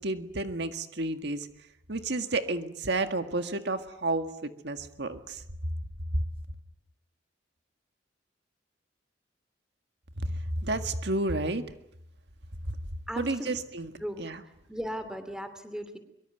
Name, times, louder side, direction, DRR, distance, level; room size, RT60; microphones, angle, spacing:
voice 1, 0.0-1.5 1.9-5.4 10.2-11.6 13.2-13.9 14.2-14.4, right 2 dB, 60° right, 8 dB, 1.8 m, -31 dB
voice 2, 13.1-13.5 14.0-16.0, equal, 5° right, 10 dB, 2.9 m, -37 dB
24.0 x 24.0 x 9.1 m, 0.77 s
head